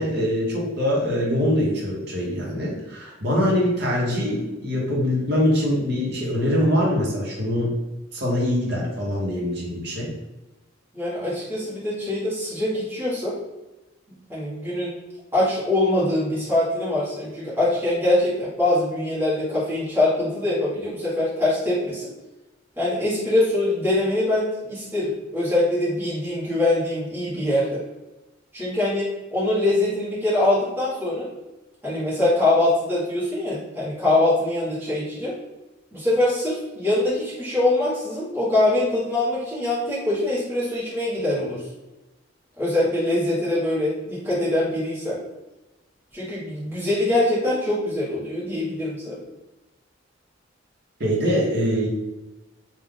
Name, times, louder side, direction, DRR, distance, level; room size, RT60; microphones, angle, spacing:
voice 1, 0.0-7.7 8.1-10.1 51.0-51.9, equal, 55° right, -3 dB, 1.1 m, -23 dB
voice 2, 10.9-13.3 14.3-14.9 15.3-22.1 22.8-27.8 28.5-31.3 31.8-35.3 35.9-41.6 42.6-45.2 46.1-49.2, left 1 dB, 10° right, -10 dB, 1.3 m, -23 dB
3.4 x 2.5 x 3.8 m, 1.1 s
head